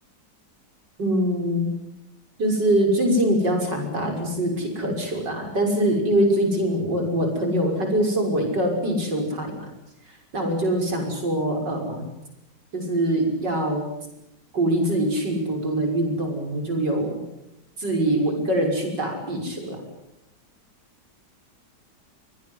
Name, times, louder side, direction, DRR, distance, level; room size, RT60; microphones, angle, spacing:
voice 1, 1.0-1.7 2.4-9.7 10.1-12.1 12.7-13.8 14.5-17.2 17.8-19.8, right 1 dB, 85° right, 3 dB, 6.8 m, -23 dB
25.5 x 19.0 x 9.5 m, 0.87 s
omnidirectional pair, 1.8 m